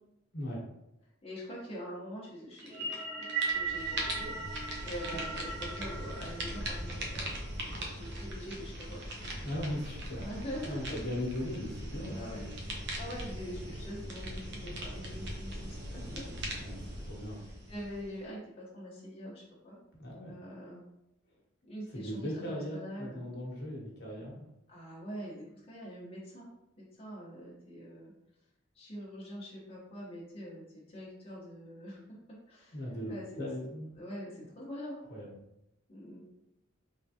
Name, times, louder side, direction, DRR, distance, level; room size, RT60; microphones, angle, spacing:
voice 1, 1.2-4.3 4.8-7.2 7.6-9.0 10.2-11.0 12.1-16.2 17.3-19.8 20.3-20.8 21.6-23.2 24.7-26.5 26.8-28.1 28.7-32.0 32.3-33.5 33.9-35.0 35.9-36.3, equal, 30° left, -6 dB, 1.0 m, -44 dB
sound 1, 2.6-7.1, right 4 dB, 40° right, 1.4 m, -38 dB
sound 2, 2.6-3.0 3.2-18.2, right 1 dB, 65° right, 0.9 m, -40 dB
voice 2, 9.4-10.3 10.7-12.5 16.6-17.4 19.9-20.4 21.9-24.5 32.7-33.9 35.1-35.3, equal, 60° left, -3 dB, 1.2 m, -38 dB
3.7 x 3.4 x 2.8 m, 0.85 s
head